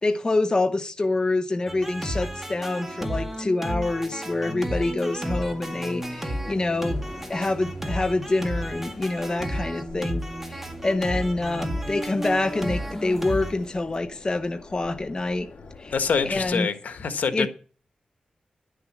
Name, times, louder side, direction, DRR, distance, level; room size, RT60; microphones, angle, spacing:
voice 1, 0.0-7.0 7.3-15.5 15.8-15.9 16.2-16.7 17.3-17.5, left 2 dB, 30° left, 0.8 m, -26 dB
sound 1, 1.7-13.5, equal, 10° right, 1.9 m, -32 dB
sound 2, 4.7-14.0, left 1 dB, 10° left, 2.8 m, -51 dB
sound 3, 5.3-16.6, left 4 dB, 60° left, 2.1 m, -46 dB
voice 2, 15.9-17.5, left 5 dB, 85° left, 1.4 m, -25 dB
11.0 x 6.7 x 8.6 m
wide cardioid pair, 90°, 3 cm